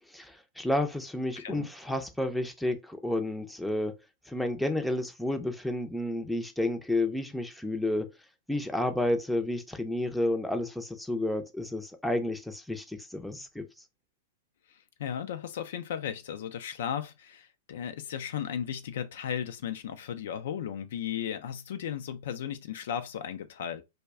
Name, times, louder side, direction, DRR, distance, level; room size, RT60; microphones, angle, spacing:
voice 1, 0.1-3.9 4.3-8.1 8.5-13.6, left 1 dB, ahead, 0.5 m, -31 dB
voice 2, 1.4-1.7 15.0-23.8, left 9 dB, 65° left, 0.4 m, -35 dB
2.3 x 2.1 x 3.4 m
hypercardioid pair, 110°, 0 cm